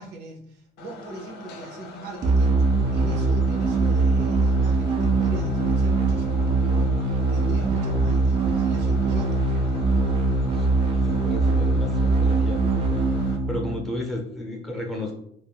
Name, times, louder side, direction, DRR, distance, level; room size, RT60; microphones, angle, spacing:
voice 1, 0.0-2.6 2.9-9.8, right 2 dB, 80° right, 1 dB, 0.7 m, -41 dB
sound 1, 0.8-13.4, left 2 dB, 80° left, 0.5 m, -43 dB
sound 2, 2.2-14.1, right 3 dB, 35° right, 0.4 m, -22 dB
voice 2, 10.9-12.6 13.5-15.1, left 1 dB, ahead, -2 dB, 0.7 m, -33 dB
2.4 x 2.1 x 3.5 m, 0.72 s
cardioid pair, 110°, 17 cm